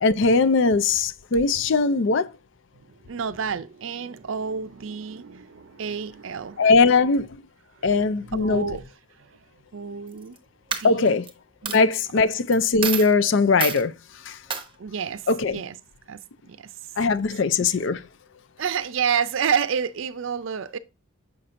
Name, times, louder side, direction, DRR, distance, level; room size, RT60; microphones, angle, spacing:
voice 1, 0.0-2.3 6.6-7.3 7.8-8.7 10.8-11.3 11.7-13.9 14.3-14.4 15.3-15.6 17.0-18.0, left 4 dB, 60° left, 0.5 m, -20 dB
voice 2, 3.0-6.7 8.3-8.9 9.2-9.3 9.7-10.4 10.7-11.2 11.6-11.8 14.8-15.8 16.1-16.2 16.5-16.7 17.6-17.7 18.6-20.8, right 7 dB, 65° right, 0.5 m, -29 dB
Coin (dropping), 10.1-10.4 10.7-11.3 11.7-11.8 12.5-12.6 12.8-13.1 13.6-13.8 14.5-14.6, right 7 dB, 25° right, 0.8 m, -28 dB
6.4 x 5.9 x 2.5 m
head